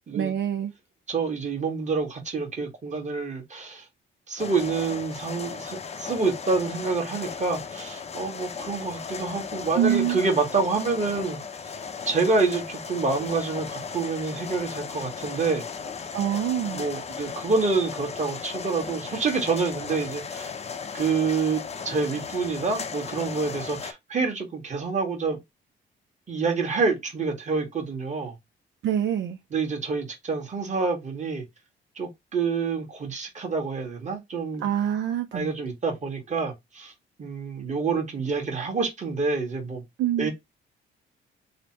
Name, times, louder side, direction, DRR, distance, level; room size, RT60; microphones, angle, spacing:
voice 1, 0.1-0.7 9.7-10.2 16.1-16.8 28.8-29.4 34.6-35.5 40.0-40.3, right 10 dB, 65° right, 0.4 m, -25 dB
voice 2, 1.1-3.8 4.3-11.4 12.0-15.6 16.7-20.5 20.9-25.4 26.3-28.3 29.5-31.4 32.0-34.7 35.3-36.9 37.2-39.8 40.2-40.3, right 4 dB, 35° right, 1.4 m, -27 dB
sound 1, 4.4-23.9, left 6 dB, 35° left, 0.6 m, -36 dB
3.2 x 2.1 x 4.2 m
cardioid pair, 90°, 20 cm